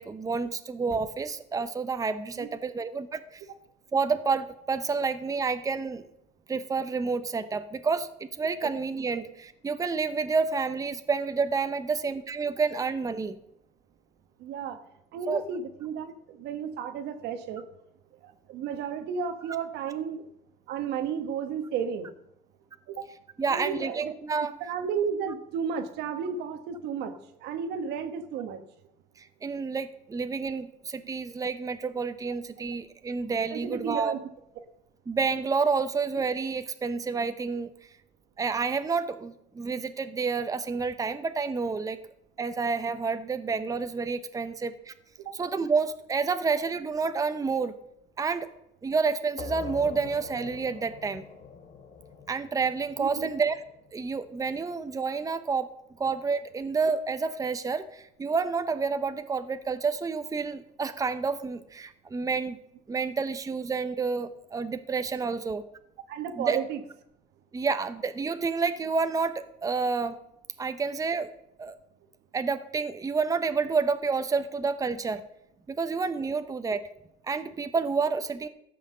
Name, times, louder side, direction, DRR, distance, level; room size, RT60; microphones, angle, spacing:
voice 1, 0.0-3.4 3.9-6.0 6.5-8.1 8.4-13.4 15.3-15.4 23.4-24.5 29.2-34.1 35.1-37.7 38.4-42.0 42.4-44.9 45.3-47.7 48.2-48.5 48.8-51.2 52.3-53.6 53.9-55.7 56.0-62.6 62.9-65.6 66.4-66.6 67.5-70.1 70.6-71.3 71.6-71.8 72.3-75.2 75.7-76.9 77.2-78.5, right 4 dB, 20° right, 10 dB, 0.7 m, -29 dB
voice 2, 14.4-14.8 15.1-17.6 18.2-20.3 20.7-22.1 22.9-23.1 23.5-24.1 24.6-27.1 27.4-28.6 33.5-34.2 53.0-53.3 66.1-66.8, right 7 dB, 80° right, 8 dB, 1.3 m, -33 dB
sound 1, 49.4-54.7, left 5 dB, 50° left, 1.5 m, -44 dB
14.0 x 5.8 x 6.6 m, 0.78 s
cardioid pair, 110°, 17 cm